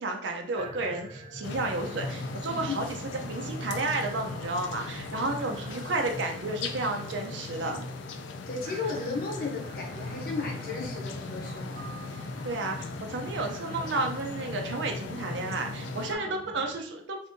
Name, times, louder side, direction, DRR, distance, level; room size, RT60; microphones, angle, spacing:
voice 1, 0.0-3.0 3.2-7.9 12.1-17.2, right 2 dB, 80° right, 3 dB, 0.5 m, -32 dB
sound 1, 0.6-16.8, right 1 dB, 40° right, 0.7 m, -45 dB
sound 2, 1.4-16.2, left 3 dB, 80° left, 0.4 m, -38 dB
voice 2, 8.5-11.9 16.1-16.4, left 4 dB, 50° left, 0 dB, 0.8 m, -35 dB
2.6 x 2.5 x 3.6 m, 0.65 s
head